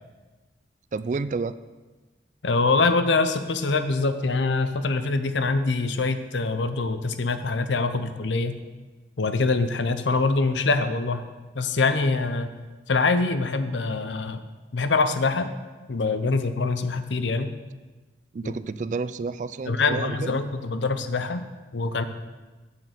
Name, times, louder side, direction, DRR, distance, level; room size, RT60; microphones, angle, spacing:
voice 1, 0.9-1.6 18.3-20.4, right 4 dB, 40° right, 14 dB, 0.3 m, -30 dB
voice 2, 2.4-8.6 9.2-11.2 11.5-12.5 12.9-14.4 14.7-15.5 15.9-17.5 18.4-18.5 19.7-22.0, left 3 dB, 85° left, 10 dB, 0.7 m, -24 dB
7.8 x 7.4 x 6.6 m, 1.3 s
head